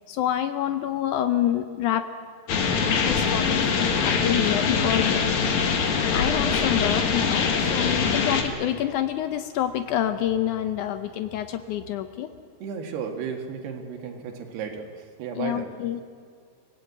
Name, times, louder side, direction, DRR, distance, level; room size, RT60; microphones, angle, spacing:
voice 1, 0.1-2.1 3.0-3.4 3.7-5.2 6.1-12.3 15.4-16.0, left 11 dB, 85° left, 9 dB, 1.7 m, -27 dB
sound 1, 2.5-8.4, left 5 dB, 55° left, 2.7 m, -23 dB
voice 2, 12.6-15.7, right 6 dB, 80° right, 3 dB, 3.9 m, -34 dB
25.5 x 17.5 x 8.4 m, 2.2 s
omnidirectional pair, 4.6 m